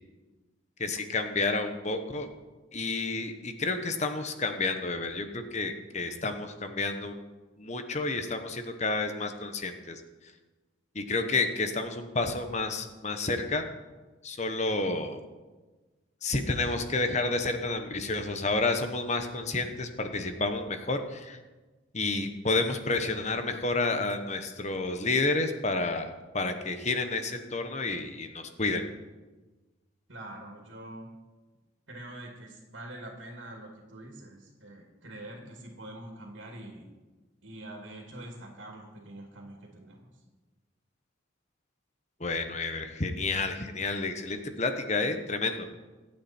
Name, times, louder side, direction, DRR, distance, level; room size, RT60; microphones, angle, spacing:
voice 1, 0.8-2.3 2.7-7.2 7.6-10.0 10.9-13.6 14.2-15.2 16.2-21.4 21.9-28.8 42.2-45.7, left 3 dB, 35° left, 7 dB, 1.2 m, -30 dB
voice 2, 30.1-31.1 31.9-36.9 37.4-40.1, right 1 dB, 70° right, 0 dB, 2.5 m, -45 dB
25.5 x 8.8 x 4.5 m, 1.2 s
head